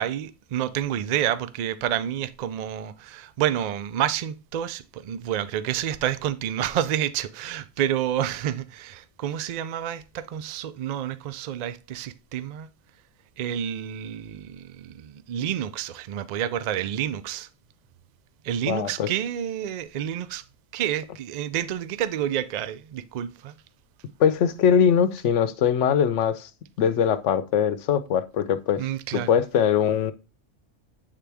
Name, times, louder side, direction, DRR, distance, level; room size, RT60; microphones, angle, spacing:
voice 1, 0.0-12.7 13.4-17.5 18.4-20.4 20.7-23.6 28.8-29.4, right 10 dB, 75° right, 0.3 m, -29 dB
voice 2, 18.7-19.1 24.2-26.5 26.8-28.8 29.3-30.1, left 8 dB, 75° left, 0.9 m, -21 dB
8.4 x 3.7 x 3.4 m
omnidirectional pair, 1.3 m